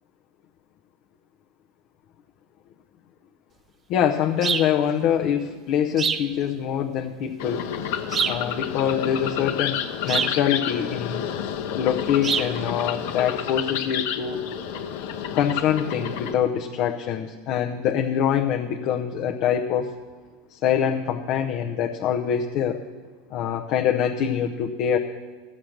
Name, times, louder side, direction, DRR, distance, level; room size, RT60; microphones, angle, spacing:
voice 1, 3.9-7.6 8.3-11.2 11.7-14.4 15.3-19.9 20.5-22.8 23.3-25.0, left 9 dB, 55° left, 4 dB, 0.7 m, -24 dB
sound 1, 4.4-4.7 6.0-6.3 8.1-8.5 10.1-10.4 12.2-12.5, right 6 dB, 30° right, 0.5 m, -25 dB
sound 2, 7.4-16.3, left 9 dB, 75° left, 1.0 m, -30 dB
14.5 x 7.4 x 6.5 m, 1.4 s
supercardioid pair, 120°, 0 cm